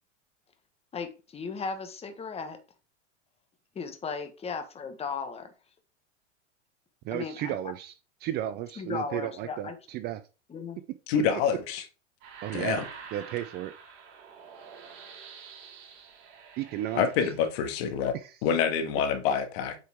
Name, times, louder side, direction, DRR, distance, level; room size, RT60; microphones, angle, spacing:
voice 1, 0.9-2.6 3.7-5.5 7.1-7.6 8.8-9.8 10.5-10.8, left 5 dB, 15° left, 1.2 m, -36 dB
voice 2, 7.0-7.9 8.2-10.2 11.3-11.4 12.4-12.8 13.1-13.7 16.6-17.3 18.1-18.4, right 12 dB, 30° right, 0.4 m, -34 dB
voice 3, 11.1-11.8 12.5-12.8 16.9-18.1 18.4-19.8, left 7 dB, 55° left, 1.7 m, -26 dB
sound 1, 12.2-17.9, right 6 dB, 60° right, 3.2 m, -47 dB
8.2 x 4.8 x 3.5 m
hypercardioid pair, 125°, 37 cm